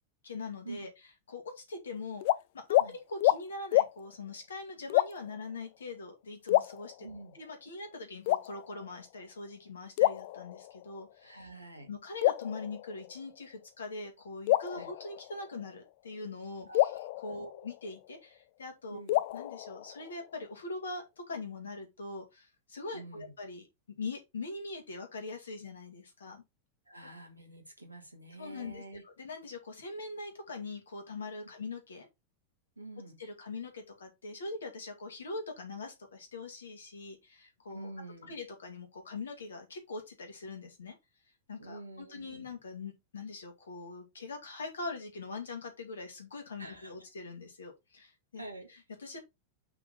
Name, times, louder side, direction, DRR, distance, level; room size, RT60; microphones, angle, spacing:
voice 1, 0.2-0.9 1.3-2.2 2.5-7.1 7.3-11.5 11.9-16.9 17.2-19.0 19.3-26.4 28.4-32.1 33.2-37.9 38.3-41.0 41.5-48.4 48.7-49.2, left 3 dB, 70° left, 2.4 m, -42 dB
sound 1, 2.2-2.4 2.7-2.9 3.2-3.4 3.7-3.9 4.9-5.4 6.5-7.3 8.3-9.0 10.0-11.0 12.2-13.3 14.5-15.7 16.7-18.2 19.1-20.3, left 16 dB, 50° left, 0.4 m, -29 dB
voice 2, 7.0-7.4 11.2-11.9 14.7-14.9 16.7-17.0 17.3-17.5 18.9-19.2 22.9-23.3 26.9-29.0 32.8-33.2 37.7-38.3 41.6-42.5 46.6-46.9 48.4-48.7, right 2 dB, 85° right, 1.9 m, -47 dB
5.8 x 5.0 x 4.0 m
figure-of-eight pair, 90°, 0 cm